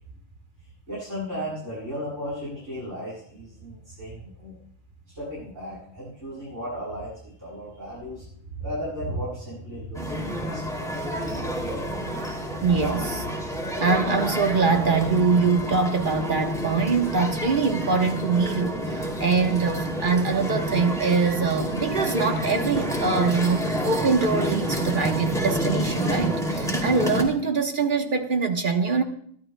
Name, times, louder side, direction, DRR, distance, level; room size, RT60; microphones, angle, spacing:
voice 1, 0.9-4.6 5.1-8.3 8.5-11.3, equal, 65° right, -9 dB, 7.9 m, -35 dB
sound 1, 9.9-27.2, equal, ahead, 2.5 m, -29 dB
voice 2, 12.6-13.2 13.8-29.0, right 4 dB, 40° right, 5 dB, 1.2 m, -23 dB
24.0 x 12.5 x 2.2 m, 0.64 s
omnidirectional pair, 1.4 m